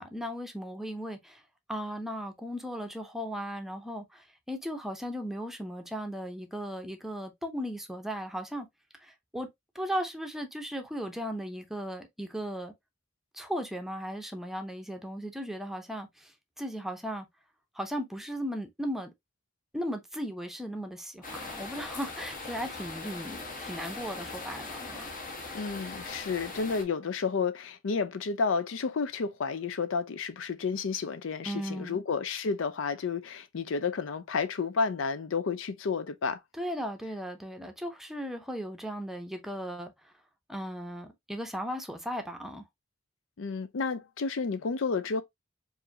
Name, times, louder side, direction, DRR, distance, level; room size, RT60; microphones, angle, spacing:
voice 1, 0.0-1.4 1.7-8.7 9.0-9.5 9.7-12.7 13.3-17.3 17.7-19.1 19.7-25.1 31.4-32.0 36.5-40.1 40.5-42.7, equal, ahead, 0.6 m, -36 dB
sound 1, 21.2-26.8, left 3 dB, 45° left, 1.1 m, -40 dB
voice 2, 25.5-36.4 43.4-45.2, left 5 dB, 80° left, 0.5 m, -31 dB
4.8 x 2.6 x 2.7 m
head